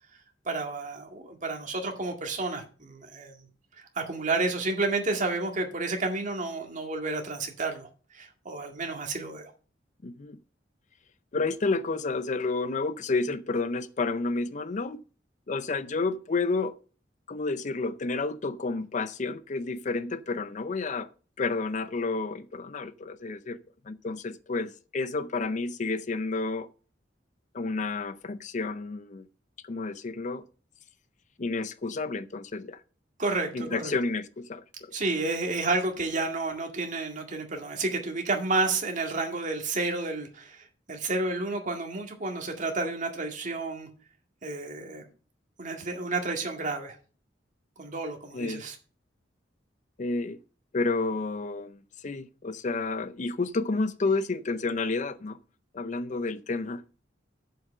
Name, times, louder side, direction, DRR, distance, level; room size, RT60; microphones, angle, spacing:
voice 1, 0.5-3.3 3.8-9.5 33.2-33.9 34.9-43.9 44.4-45.1 45.6-47.0 47.8-48.8, right 3 dB, 45° right, 2.0 m, -31 dB
voice 2, 10.0-10.4 11.3-15.0 15.5-16.8 17.3-21.1 21.4-23.6 23.8-26.7 27.5-29.3 29.6-30.4 31.4-32.8 33.5-34.9 48.3-48.6 50.0-50.4 50.7-55.4 55.7-56.8, left 3 dB, 40° left, 0.5 m, -30 dB
7.4 x 5.7 x 7.4 m
head